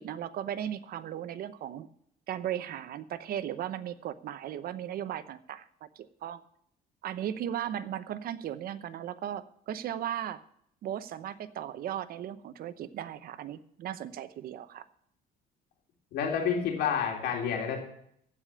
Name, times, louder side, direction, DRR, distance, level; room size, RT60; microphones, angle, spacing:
voice 1, 0.0-1.9 2.3-6.4 7.0-10.4 10.8-14.9, right 10 dB, 60° right, 13 dB, 0.8 m, -37 dB
voice 2, 16.1-17.8, left 7 dB, 75° left, 1 dB, 3.4 m, -29 dB
15.0 x 5.1 x 8.5 m, 0.69 s
cardioid pair, 110°, 17 cm